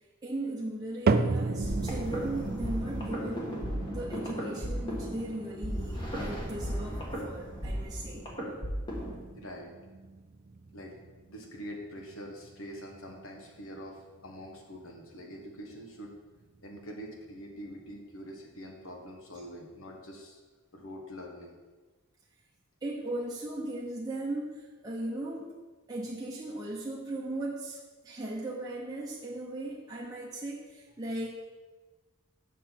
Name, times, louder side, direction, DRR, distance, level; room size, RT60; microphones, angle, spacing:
voice 1, 0.2-8.3 22.8-25.6 25.9-31.3, right 1 dB, 15° right, -4 dB, 0.8 m, -37 dB
sound 1, 1.1-17.4 17.7-18.2 18.8-18.9 19.7-19.8, right 4 dB, 45° right, 0.4 m, -36 dB
sound 2, 1.6-9.2, equal, 20° left, 1.6 m, -35 dB
voice 2, 9.3-9.7 10.7-10.9 11.3-16.1 16.6-20.4 20.7-21.6, equal, 65° left, 1 dB, 1.3 m, -44 dB
6.5 x 6.4 x 5.8 m, 1.3 s
head